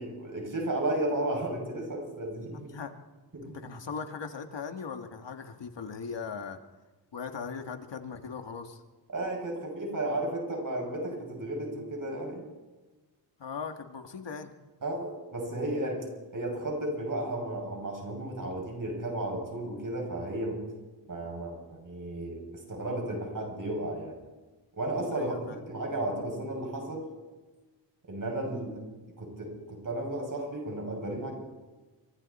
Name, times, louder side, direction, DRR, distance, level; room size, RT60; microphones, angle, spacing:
voice 1, 0.0-2.7 3.3-3.6 9.1-12.4 14.8-16.1 16.3-20.6 21.1-24.2 24.8-27.1 28.1-28.8 29.2-31.3, right 1 dB, 45° right, 0 dB, 6.8 m, -33 dB
voice 2, 2.5-2.9 3.5-6.6 7.1-8.8 13.4-14.5 25.2-25.6, left 5 dB, 65° left, 6 dB, 1.7 m, -39 dB
29.5 x 25.0 x 4.3 m, 1.2 s
wide cardioid pair, 155°, 46 cm